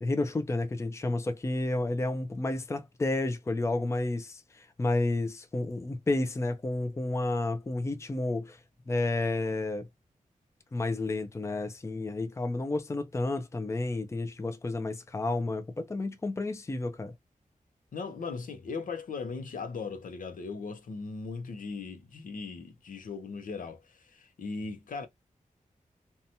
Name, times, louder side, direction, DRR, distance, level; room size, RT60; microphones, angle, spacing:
voice 1, 0.0-8.6 8.9-9.9 10.7-17.1, left 2 dB, 20° left, 0.4 m, -31 dB
voice 2, 17.9-25.1, left 4 dB, 75° left, 0.6 m, -38 dB
2.7 x 2.2 x 2.7 m
wide cardioid pair, 100°, 14 cm